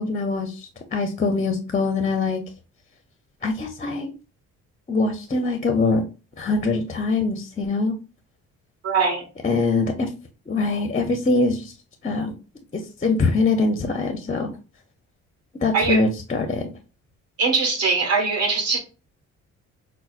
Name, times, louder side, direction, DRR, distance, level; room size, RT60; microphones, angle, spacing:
voice 1, 0.0-2.4 3.4-4.1 4.9-6.0 6.4-7.9 9.4-10.1 10.5-11.7 12.0-12.3 12.7-14.5 15.6-16.7, left 3 dB, 25° left, 0.6 m, -23 dB
voice 2, 8.8-9.3 15.7-16.0 17.4-18.8, right 4 dB, 55° right, 1.4 m, -21 dB
5.5 x 2.1 x 2.3 m
cardioid pair, 90°, 30 cm